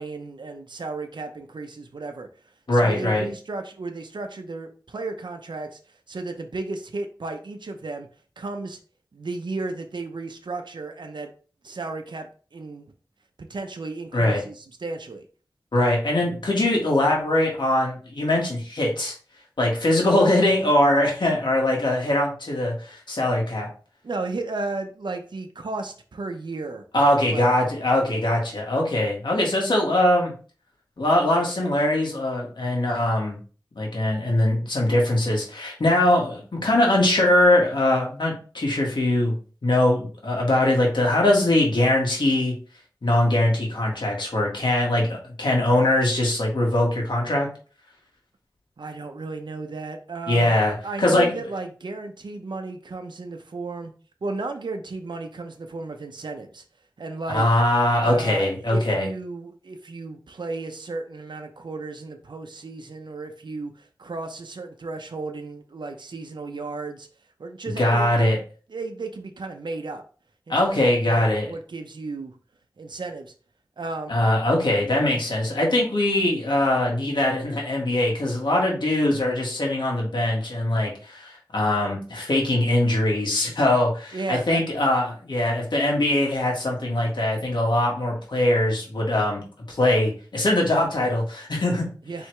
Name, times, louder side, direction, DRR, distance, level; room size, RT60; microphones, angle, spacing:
voice 1, 0.0-2.3 2.7-8.1 8.4-8.8 9.1-11.3 11.6-12.9 13.4-15.3 24.0-26.8 27.3-27.6 48.8-53.9 54.2-56.6 57.0-57.4 58.0-67.1 67.4-68.4 68.7-70.0 70.5-72.3 72.8-73.3 73.8-74.1 84.1-84.6 92.1-92.3, right 3 dB, 80° right, 6 dB, 0.6 m, -34 dB
voice 2, 2.7-3.2 14.1-14.4 15.7-19.1 19.6-23.7 26.9-30.3 31.0-33.4 33.7-39.3 39.6-42.6 43.0-47.5 50.3-51.3 57.3-59.1 67.8-68.4 70.5-71.5 74.1-91.9, left 1 dB, 80° left, -1 dB, 1.6 m, -22 dB
4.6 x 3.4 x 3.3 m, 0.39 s
wide cardioid pair, 50°, 8 cm